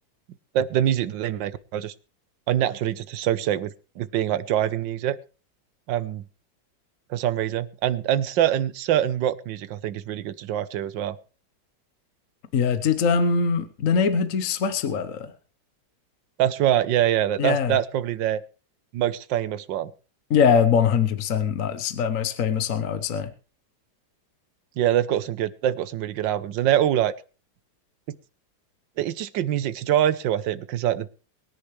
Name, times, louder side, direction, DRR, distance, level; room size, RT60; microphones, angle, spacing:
voice 1, 0.5-1.9 2.5-5.2 5.9-6.2 7.1-11.2 16.4-18.4 18.9-19.9 24.8-27.1 28.1-28.2 29.0-31.1, right 11 dB, 80° right, 16 dB, 1.5 m, -24 dB
voice 2, 12.5-15.3 17.4-17.7 20.3-23.3, left 6 dB, 50° left, 10 dB, 1.2 m, -22 dB
23.5 x 10.0 x 3.2 m, 0.37 s
omnidirectional pair, 2.0 m